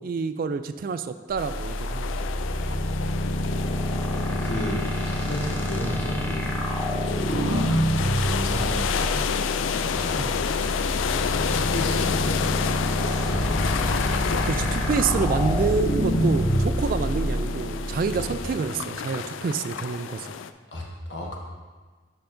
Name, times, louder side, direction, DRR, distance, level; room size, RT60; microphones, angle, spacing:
voice 1, 0.0-2.3 2.7-2.9 10.2-10.4 14.4-20.3, right 5 dB, 50° right, 11 dB, 0.3 m, -28 dB
sound 1, 1.3-18.5, equal, 10° left, 0.7 m, -27 dB
sound 2, 1.4-20.5, left 7 dB, 85° left, 0.3 m, -31 dB
voice 2, 4.2-6.6 7.0-9.3 9.8-12.6 13.2-13.8 18.1-18.3 20.7-20.8 21.1-21.4, left 1 dB, 65° left, -2 dB, 1.3 m, -34 dB
sound 3, 13.0-19.6, left 1 dB, 40° left, 1.4 m, -32 dB
10.0 x 5.6 x 2.6 m, 1.4 s
head